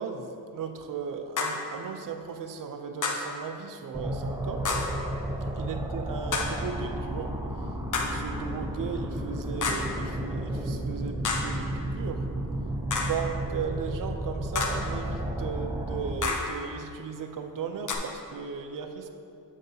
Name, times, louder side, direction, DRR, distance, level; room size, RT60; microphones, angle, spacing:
voice 1, 0.0-4.7 5.5-7.4 8.0-12.3 13.0-19.1, right 6 dB, 55° right, 6 dB, 0.6 m, -36 dB
sound 1, 1.4-1.7 3.0-3.4 4.6-5.0 6.3-6.7 7.9-8.3 9.6-10.0 11.2-11.6 12.9-13.3 14.6-14.9 16.2-16.6 17.9-18.0, left 4 dB, 50° left, 0.8 m, -30 dB
sound 2, 3.9-16.1, right 1 dB, 10° right, 0.5 m, -32 dB
8.4 x 6.4 x 2.8 m, 2.6 s
cardioid pair, 90°, 40 cm